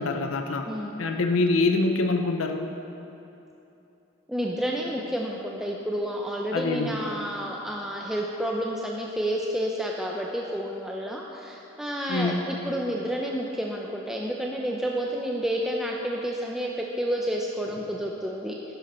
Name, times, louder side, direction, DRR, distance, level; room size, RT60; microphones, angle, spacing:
voice 1, 0.0-0.7 1.0-2.6 6.5-7.1 12.1-12.5, left 3 dB, 85° left, 5 dB, 0.7 m, -25 dB
voice 2, 0.7-1.0 4.3-16.7 17.0-18.5, equal, ahead, -2 dB, 0.6 m, -30 dB
12.0 x 10.5 x 4.3 m, 3.0 s
head